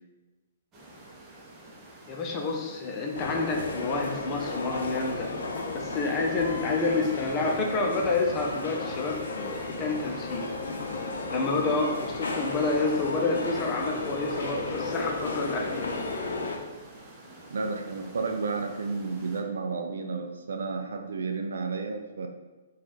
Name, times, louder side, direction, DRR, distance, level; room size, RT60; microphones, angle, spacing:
sound 1, 0.7-19.4, right 1 dB, 25° right, 0.9 m, -49 dB
voice 1, 2.1-5.3 5.7-10.5 11.3-16.1, left 3 dB, 25° left, 1 dB, 0.7 m, -29 dB
sound 2, 3.1-16.6, left 3 dB, 65° left, 0.7 m, -34 dB
voice 2, 17.5-22.3, right 4 dB, 65° right, 4 dB, 0.5 m, -32 dB
4.3 x 2.5 x 4.2 m, 1.2 s
figure-of-eight pair, 120°, 0 cm